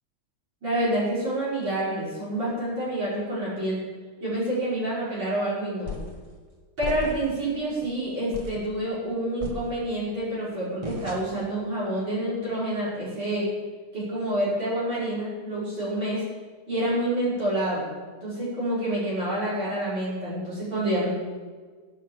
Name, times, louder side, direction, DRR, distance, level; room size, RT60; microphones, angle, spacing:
voice 1, 0.6-3.8 4.2-5.9 6.8-13.5 13.9-16.2 16.7-17.9 18.2-21.1, right 1 dB, 70° right, -9 dB, 6.2 m, -28 dB
sound 1, 5.9-6.2 6.8-7.4 7.8-7.9 8.3-8.7 9.4-10.1 10.8-11.5, left 2 dB, 20° right, 1.1 m, -36 dB
16.5 x 6.5 x 7.4 m, 1.5 s
omnidirectional pair, 2.1 m